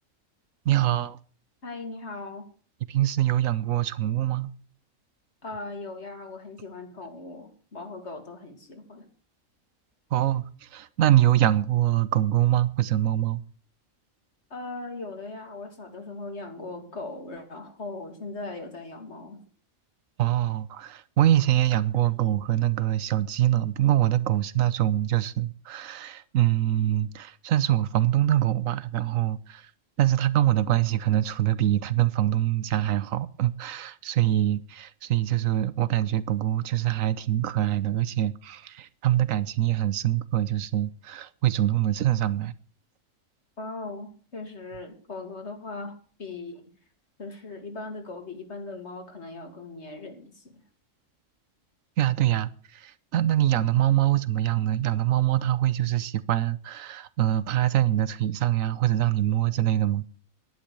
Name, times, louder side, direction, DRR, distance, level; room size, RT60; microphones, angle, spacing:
voice 1, 0.7-1.2 2.9-4.5 10.1-13.4 20.2-29.7 30.0-42.5 52.0-60.1, right 13 dB, 90° right, 1.2 m, -24 dB
voice 2, 1.6-2.5 5.4-9.1 14.5-19.4 43.6-46.7 47.2-50.6, left 3 dB, 60° left, 2.6 m, -39 dB
11.5 x 11.0 x 6.9 m
omnidirectional pair, 1.3 m